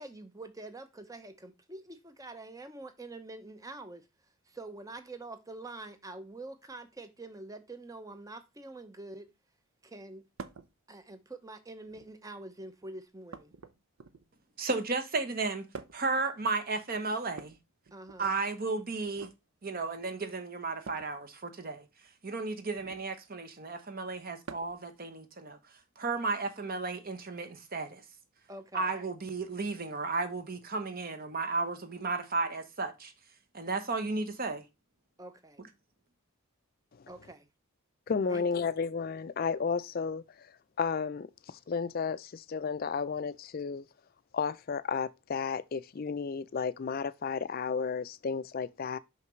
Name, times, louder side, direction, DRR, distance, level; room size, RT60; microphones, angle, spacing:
voice 1, 0.0-4.1 4.5-9.3 9.8-10.2 10.9-13.5 17.9-18.3 28.5-28.9 35.2-35.6 37.1-37.5 38.3-38.7, right 2 dB, 15° right, 0.7 m, -46 dB
sound 1, 10.4-10.7 11.8-12.3 13.3-14.4 15.7-16.2 17.3-18.4 19.1-19.4 20.8-21.1 22.7-23.1 24.4-24.9 26.3-26.4 27.7-27.8, right 5 dB, 65° right, 0.6 m, -47 dB
voice 2, 14.6-15.7 15.9-17.6 18.2-19.3 19.6-21.8 22.2-25.6 26.0-28.0 28.7-33.1 33.5-34.6, right 3 dB, 40° right, 0.9 m, -34 dB
voice 3, 38.1-40.5 40.8-43.9 44.3-49.0, left 5 dB, 40° left, 0.4 m, -33 dB
5.8 x 5.7 x 3.1 m
head